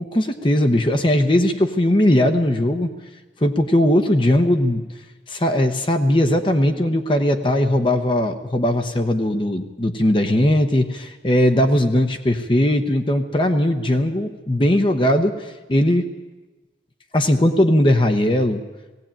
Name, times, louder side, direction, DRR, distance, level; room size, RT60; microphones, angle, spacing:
voice 1, 0.0-2.9 3.4-4.8 5.3-16.0 17.1-18.6, left 1 dB, 25° left, 6 dB, 0.9 m, -19 dB
18.0 x 16.5 x 8.9 m, 1.2 s
head